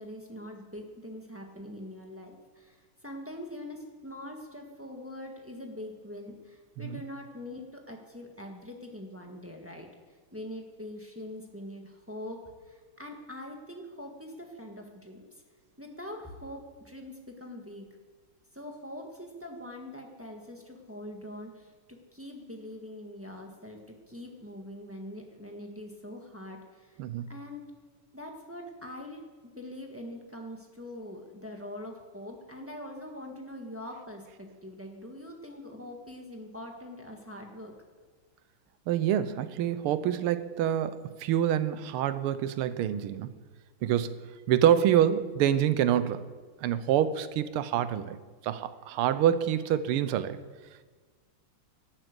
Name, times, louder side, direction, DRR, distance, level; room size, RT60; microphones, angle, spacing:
voice 1, 0.0-9.9 10.3-15.4 15.8-17.8 18.5-21.7 22.1-23.8 24.1-27.0 27.3-27.6 28.1-29.2 29.6-37.7, left 1 dB, 10° right, 1 dB, 1.2 m, -43 dB
voice 2, 38.9-43.3 43.8-44.2 44.5-46.3 46.6-48.2 48.4-50.4, right 10 dB, 85° right, 14 dB, 1.6 m, -26 dB
12.0 x 8.9 x 8.1 m, 1.4 s
omnidirectional pair, 2.4 m